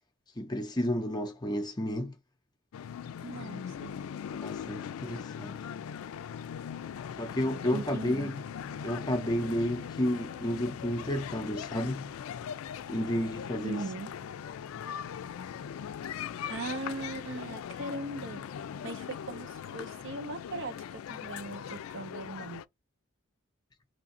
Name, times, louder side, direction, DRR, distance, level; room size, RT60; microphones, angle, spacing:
voice 1, 0.4-2.1 4.4-5.6 7.2-8.4 8.8-12.0 12.9-13.8, equal, 20° left, 0.6 m, -31 dB
sound 1, 2.7-22.6, left 8 dB, 85° left, 0.3 m, -40 dB
voice 2, 3.2-3.9 7.7-8.3 13.6-14.1 16.5-18.4 18.8-22.6, right 2 dB, 65° right, 0.8 m, -39 dB
3.2 x 2.5 x 4.1 m
head